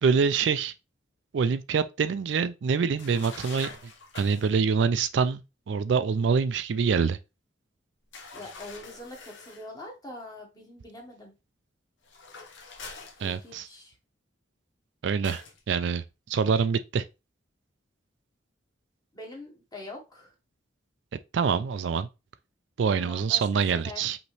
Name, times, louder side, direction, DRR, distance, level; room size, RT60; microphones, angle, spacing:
voice 1, 0.0-0.7 1.3-3.7 4.1-7.2 13.2-13.7 15.0-17.0 21.3-22.1 22.8-24.2, right 6 dB, 65° right, 0.3 m, -25 dB
sound 1, 3.0-4.6 8.1-9.7 12.0-13.8 15.2-15.6, left 4 dB, 70° left, 1.1 m, -45 dB
voice 2, 8.3-11.3 13.2-13.9 19.1-20.3 23.0-23.4 23.7-24.0, left 1 dB, 20° left, 1.3 m, -43 dB
5.2 x 3.0 x 3.2 m
head